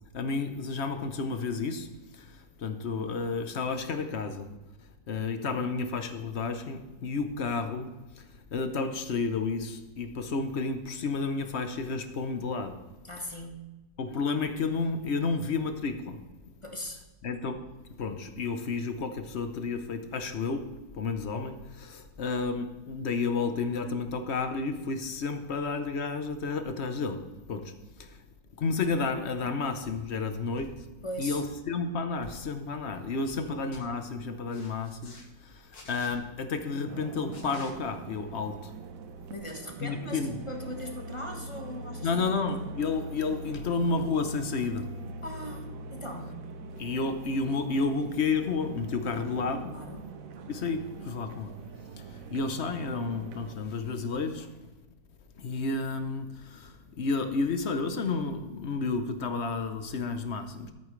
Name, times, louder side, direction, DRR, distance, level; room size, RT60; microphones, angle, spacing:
voice 1, 0.1-4.5 5.1-12.8 14.0-16.2 17.2-17.6 18.0-28.2 28.6-30.9 31.2-38.7 39.8-40.4 42.0-44.9 46.8-49.8 50.5-51.6 52.0-54.5 55.4-60.7, left 4 dB, 50° left, 1.0 m, -31 dB
voice 2, 13.0-13.7 16.6-17.0 31.0-31.4 33.3-33.6 39.3-42.3 45.2-46.4 49.7-50.1, equal, 20° left, 1.1 m, -40 dB
sound 1, 29.8-30.0 30.6-30.9 31.3-31.6 32.2-32.4 32.9-33.4 33.7-33.8 34.5-35.2 35.7-36.1 37.3-37.7 39.5-39.6, left 2 dB, 75° left, 2.1 m, -50 dB
sound 2, 36.9-53.6, right 2 dB, 65° right, 1.1 m, -42 dB
13.5 x 8.7 x 3.2 m
omnidirectional pair, 1.6 m